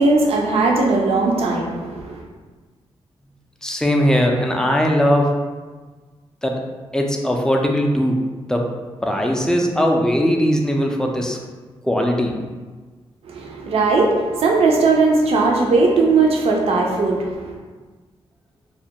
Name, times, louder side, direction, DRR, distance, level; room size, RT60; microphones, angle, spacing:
voice 1, 0.0-2.2 13.3-17.6, right 3 dB, 65° right, -1 dB, 0.4 m, -18 dB
voice 2, 3.6-5.3 6.4-6.6 6.9-8.2 8.5-8.7 9.0-11.4 11.8-12.4, equal, 5° left, 1 dB, 0.3 m, -19 dB
2.3 x 2.1 x 2.7 m, 1.4 s
cardioid pair, 85°, 11 cm